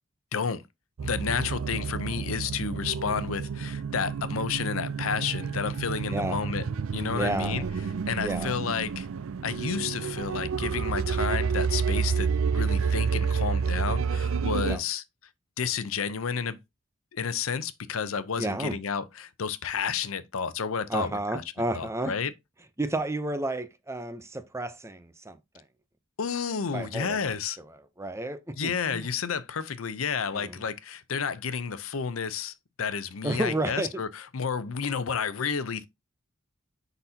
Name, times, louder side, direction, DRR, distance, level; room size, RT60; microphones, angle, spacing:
voice 1, 0.3-0.6 1.0-6.7 6.9-7.6 8.1-9.1 9.4-15.0 15.6-16.6 17.1-21.4 21.8-22.3 26.2-27.6 28.6-35.9, left 6 dB, 85° left, 0.6 m, -31 dB
sound 1, 1.0-14.8, right 6 dB, 85° right, 0.4 m, -29 dB
voice 2, 7.1-7.7 8.2-8.5 14.7-14.8 18.4-18.8 20.9-22.1 22.8-25.4 26.7-27.3 28.0-29.1 30.3-30.6 33.2-34.0, right 2 dB, 15° right, 0.6 m, -31 dB
9.7 x 4.1 x 2.8 m
head